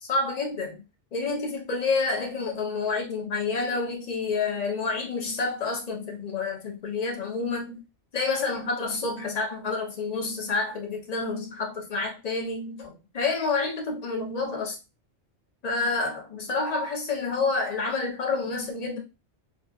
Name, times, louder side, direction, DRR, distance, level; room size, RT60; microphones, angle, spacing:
voice 1, 0.0-0.8 1.1-7.8 8.1-14.8 15.6-19.0, left 4 dB, 45° left, 0.7 m, -29 dB
2.7 x 2.3 x 2.2 m
omnidirectional pair, 1.1 m